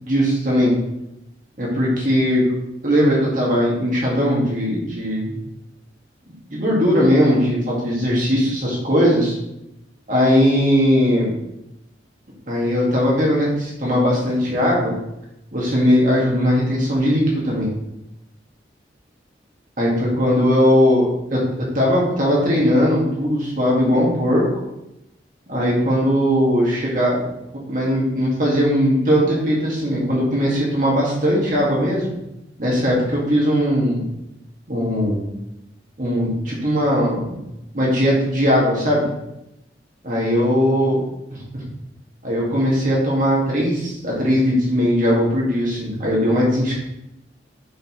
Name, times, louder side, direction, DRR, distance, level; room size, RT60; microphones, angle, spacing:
voice 1, 0.1-0.7 1.6-2.5 2.8-5.3 6.5-9.4 10.1-11.3 12.5-14.9 15.5-17.7 19.8-24.5 25.5-27.2 27.5-32.1 32.6-34.1 34.7-35.2 36.0-37.4 37.7-39.1 40.0-41.0 41.3-41.6 42.2-46.7, equal, 45° right, -4 dB, 1.9 m, -19 dB
6.4 x 5.2 x 3.1 m, 0.89 s
head